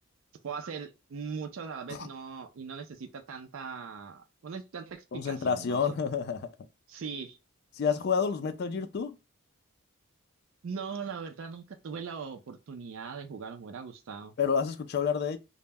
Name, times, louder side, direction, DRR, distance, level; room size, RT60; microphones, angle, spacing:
voice 1, 0.4-5.9 6.9-7.4 10.6-14.3, right 5 dB, 60° right, 0.4 m, -40 dB
voice 2, 5.1-6.4 7.8-9.2 14.4-15.4, left 6 dB, 45° left, 0.3 m, -29 dB
2.1 x 2.0 x 3.3 m
head